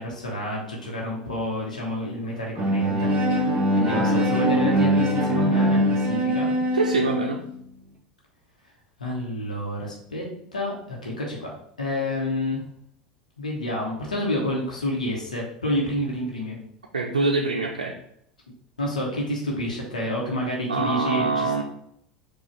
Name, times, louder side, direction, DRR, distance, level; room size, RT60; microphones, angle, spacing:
voice 1, 0.0-3.5 3.8-6.5 9.0-10.3 10.5-11.5 11.8-12.6 13.4-16.6 17.0-17.3 18.8-21.6, left 1 dB, 85° left, -2 dB, 0.9 m, -29 dB
Bowed string instrument, 2.6-7.5, equal, 30° right, 1.0 m, -22 dB
voice 2, 6.7-7.4 16.9-17.9 20.7-21.6, right 3 dB, 85° right, 0 dB, 0.5 m, -24 dB
4.7 x 2.4 x 4.6 m, 0.70 s
figure-of-eight pair, 80°, 4 cm